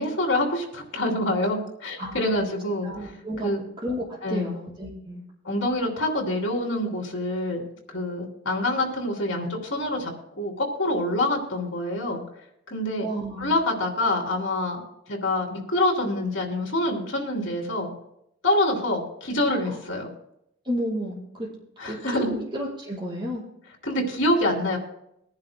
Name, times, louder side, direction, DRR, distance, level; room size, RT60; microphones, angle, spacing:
voice 1, 0.0-2.9 3.4-3.6 4.2-4.5 5.4-7.6 7.9-10.1 10.4-12.2 12.7-13.1 13.4-14.8 15.1-17.9 18.4-20.1 21.8-22.3 23.8-24.8, left 1 dB, 75° left, 1 dB, 3.0 m, -26 dB
voice 2, 2.0-2.5 2.8-3.5 3.8-5.2 13.0-13.5 19.7-19.8 20.6-21.5 21.8-23.4, equal, 25° right, -8 dB, 4.9 m, -32 dB
23.5 x 10.5 x 2.2 m, 0.77 s
head